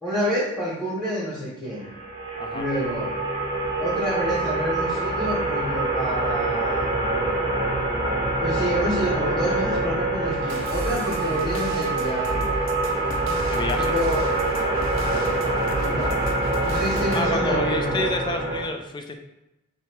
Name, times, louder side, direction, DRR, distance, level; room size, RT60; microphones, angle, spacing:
voice 1, 0.0-1.9 2.5-3.1 3.8-7.1 8.4-12.5 13.8-14.3 15.7-16.1 16.6-18.1, equal, ahead, -7 dB, 1.1 m, -28 dB
sound 1, 1.8-18.6, right 2 dB, 20° right, 0.8 m, -25 dB
sound 2, 10.5-17.3, right 2 dB, 65° right, 0.6 m, -33 dB
voice 2, 13.5-13.9 17.1-19.1, left 2 dB, 20° left, 5 dB, 0.4 m, -29 dB
3.4 x 2.9 x 4.6 m, 0.92 s
head